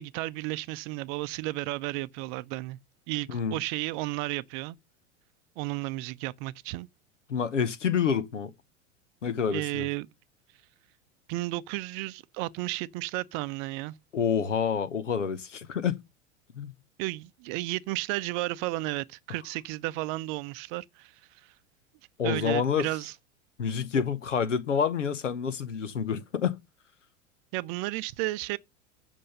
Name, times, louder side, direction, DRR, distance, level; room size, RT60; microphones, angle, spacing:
voice 1, 0.0-2.8 3.1-4.8 5.6-6.9 9.5-10.1 11.3-14.0 17.0-21.5 22.2-23.1 27.5-28.6, right 19 dB, 45° right, 0.6 m, -33 dB
voice 2, 7.3-8.5 9.2-9.9 14.1-16.0 16.6-16.7 22.2-22.9 23.6-26.6, left 7 dB, 85° left, 1.0 m, -28 dB
7.7 x 5.3 x 6.7 m
figure-of-eight pair, 90°, 36 cm